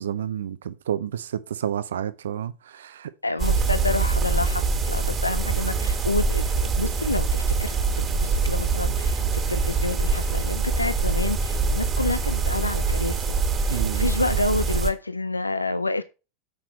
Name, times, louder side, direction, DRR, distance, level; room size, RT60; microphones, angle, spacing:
voice 1, 0.0-3.1 13.7-14.1, right 9 dB, 65° right, 0.5 m, -30 dB
voice 2, 3.2-6.5 6.7-13.4 13.6-16.0, left 2 dB, 85° left, 0.4 m, -28 dB
sound 1, 3.4-14.9, right 4 dB, 20° right, 2.1 m, -24 dB
7.6 x 5.8 x 4.2 m
figure-of-eight pair, 85°, 0 cm